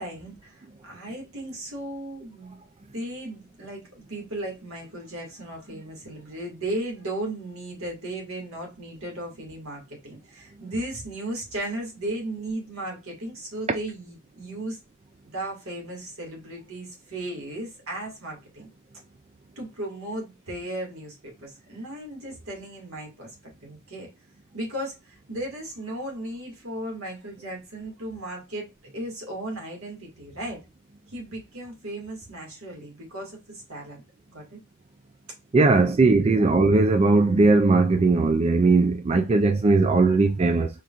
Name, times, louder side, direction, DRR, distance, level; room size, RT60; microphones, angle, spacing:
voice 1, 0.0-2.6 2.9-14.8 15.2-18.7 19.6-21.2 21.4-24.1 24.5-28.7 28.9-30.6 31.1-34.0 34.3-34.6 35.8-36.5, right 1 dB, 70° right, 2.1 m, -36 dB
voice 2, 35.5-40.7, right 3 dB, 30° right, 0.3 m, -19 dB
4.6 x 3.6 x 2.5 m
head